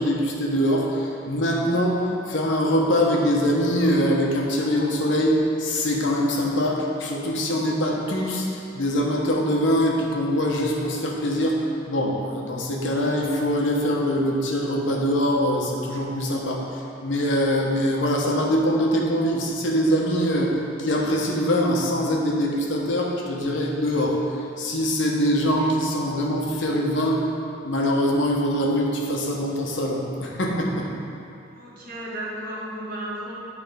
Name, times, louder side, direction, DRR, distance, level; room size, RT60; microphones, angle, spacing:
voice 1, 0.0-8.5 8.7-11.6 11.9-16.7 17.0-24.2 24.6-27.2 27.6-30.9, equal, 80° left, -1 dB, 1.0 m, -23 dB
voice 2, 31.5-33.3, right 1 dB, 50° right, -5 dB, 1.5 m, -34 dB
10.5 x 3.5 x 5.0 m, 2.7 s
head